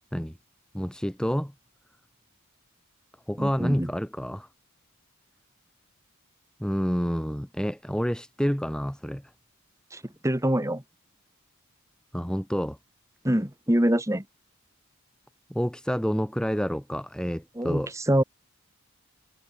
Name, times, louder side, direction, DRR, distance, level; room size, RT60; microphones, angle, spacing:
voice 1, 0.7-1.5 3.3-4.5 6.6-9.2 12.1-12.8 15.5-17.9, equal, 5° left, 2.3 m, -28 dB
voice 2, 3.4-3.9 9.9-10.8 13.2-14.2 17.6-18.2, right 1 dB, 15° right, 1.9 m, -25 dB
head